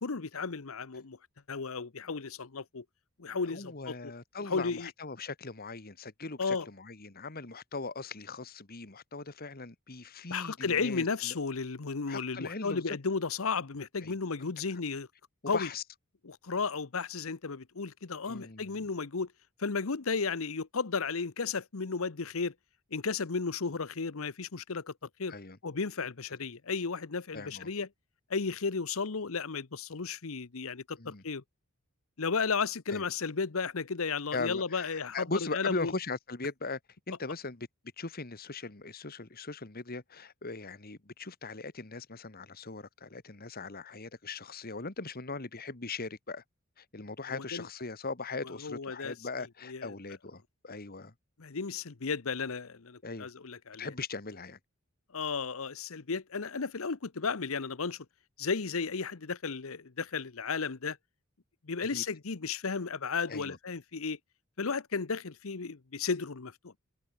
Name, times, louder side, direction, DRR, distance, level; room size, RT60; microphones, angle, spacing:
voice 1, 0.0-1.2 1.5-2.8 3.2-4.0 4.4-4.9 6.4-6.7 10.3-15.1 15.5-15.7 16.2-19.3 19.6-22.5 22.9-24.9 25.2-25.3 25.6-27.9 28.3-31.4 32.2-35.9 47.3-47.7 48.4-49.2 49.6-49.9 51.4-53.9 55.1-58.0 58.4-61.0 61.6-64.2 64.6-66.8, left 5 dB, 65° left, 0.9 m, -34 dB
voice 2, 3.5-11.4 12.1-13.0 14.0-14.2 15.5-15.8 18.3-18.8 25.3-25.6 27.3-27.7 31.0-31.2 32.9-33.0 34.3-36.8 37.1-37.7 38.0-46.4 46.8-51.1 53.0-53.3 53.8-54.6 61.9-62.0 63.3-63.6, left 3 dB, 45° left, 1.8 m, -39 dB
open air
head